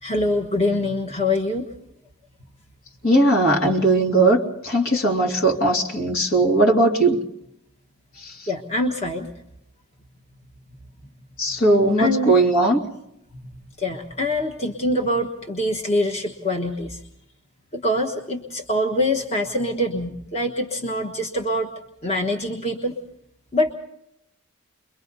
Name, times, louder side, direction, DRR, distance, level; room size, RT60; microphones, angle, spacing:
voice 1, 0.0-1.7 8.5-9.3 12.0-12.3 13.8-17.0 17.7-21.7 22.0-22.9 23.5-23.7, left 1 dB, 30° left, 0 dB, 1.3 m, -24 dB
voice 2, 3.0-7.2 8.2-8.3 11.4-12.8, right 2 dB, 65° left, -2 dB, 2.8 m, -18 dB
29.5 x 23.0 x 4.0 m, 0.79 s
head